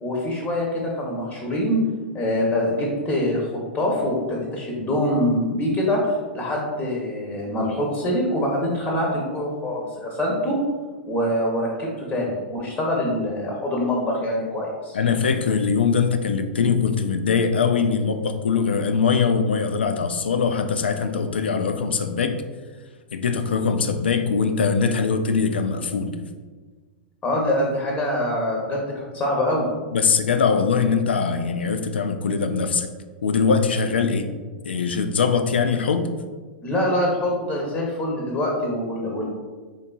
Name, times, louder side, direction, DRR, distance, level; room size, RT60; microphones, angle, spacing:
voice 1, 0.0-1.8 2.1-6.0 6.3-10.6 11.1-15.0 27.2-29.7 36.6-39.3, left 1 dB, 20° left, -2 dB, 0.8 m, -24 dB
voice 2, 14.9-22.4 23.1-26.2 29.9-32.9 33.2-34.3 34.6-36.1, left 5 dB, 80° left, 7 dB, 0.4 m, -22 dB
3.9 x 3.5 x 2.3 m, 1.4 s
hypercardioid pair, 105°, 6 cm